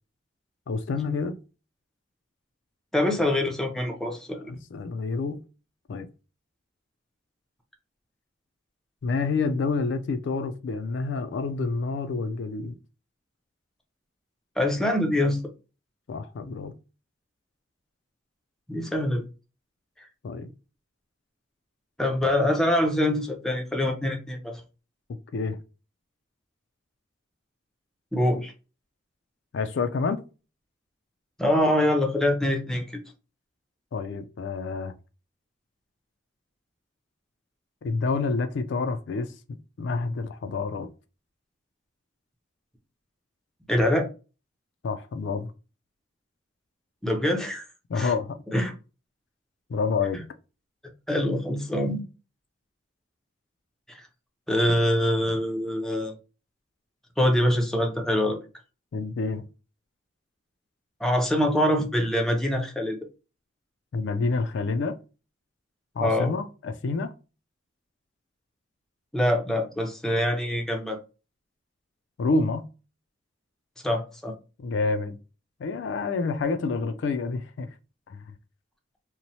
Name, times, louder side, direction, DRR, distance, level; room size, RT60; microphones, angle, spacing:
voice 1, 0.7-1.4 4.5-5.4 5.9-6.1 9.0-12.8 16.1-16.7 20.2-20.5 25.3-25.6 29.5-30.2 33.9-34.9 37.8-40.9 44.8-45.5 47.9-48.4 49.7-50.2 58.9-59.4 63.9-65.0 66.0-67.1 72.2-72.7 74.6-75.2 75.6-77.7 78.1-78.2, left 4 dB, 65° left, 0.3 m, -28 dB
voice 2, 2.9-4.5 14.6-15.4 18.7-19.2 22.0-24.6 28.1-28.5 31.4-32.8 43.7-44.1 47.0-47.6 48.0-48.1 48.5-48.7 51.1-52.0 54.5-56.1 57.2-58.4 61.0-63.0 66.0-66.3 69.1-71.0 73.8-74.3, left 1 dB, ahead, 0.5 m, -24 dB
3.0 x 2.0 x 2.7 m
head